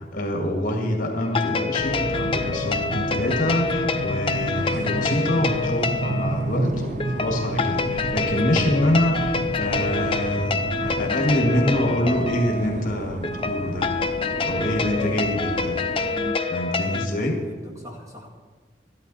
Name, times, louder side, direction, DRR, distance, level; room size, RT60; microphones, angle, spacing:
voice 1, 0.0-13.9 14.4-15.8 16.5-17.4, left 1 dB, 50° left, 2 dB, 1.9 m, -25 dB
sound 1, 1.2-17.1, left 4 dB, 30° left, 0.5 m, -27 dB
sound 2, 1.8-16.3, right 2 dB, 45° right, 0.5 m, -32 dB
sound 3, 2.2-7.1, right 1 dB, 80° right, 3.2 m, -41 dB
voice 2, 17.4-18.3, equal, 20° right, -1 dB, 1.9 m, -41 dB
12.5 x 12.5 x 4.2 m, 1.5 s
head